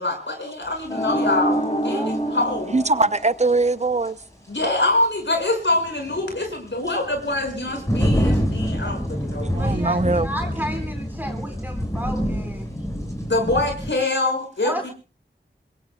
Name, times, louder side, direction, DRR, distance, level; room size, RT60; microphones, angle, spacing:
voice 1, 0.0-2.7 4.5-9.5 13.3-14.9, left 2 dB, 75° left, 5.8 m, -24 dB
sound 1, 0.9-3.9, right 1 dB, 30° left, 5.4 m, -26 dB
sound 2, 0.9-1.0 3.5-3.6 4.1-4.2 5.7-13.9, equal, 15° left, 5.4 m, -26 dB
voice 2, 1.8-2.1 9.5-12.7 14.6-14.9, equal, 10° right, 4.3 m, -32 dB
voice 3, 2.7-4.2 9.5-10.3, right 3 dB, 35° right, 0.7 m, -21 dB
26.5 x 22.5 x 2.3 m
wide cardioid pair, 45°, 19 cm